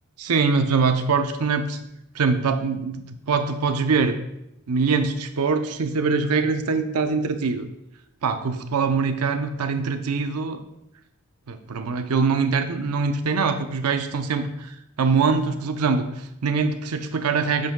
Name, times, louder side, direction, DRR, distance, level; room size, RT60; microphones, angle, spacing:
voice 1, 0.2-1.8 2.1-4.2 4.7-7.7 8.2-10.6 11.5-17.7, right 4 dB, 85° right, 8 dB, 0.6 m, -23 dB
8.1 x 7.4 x 2.2 m, 0.82 s
head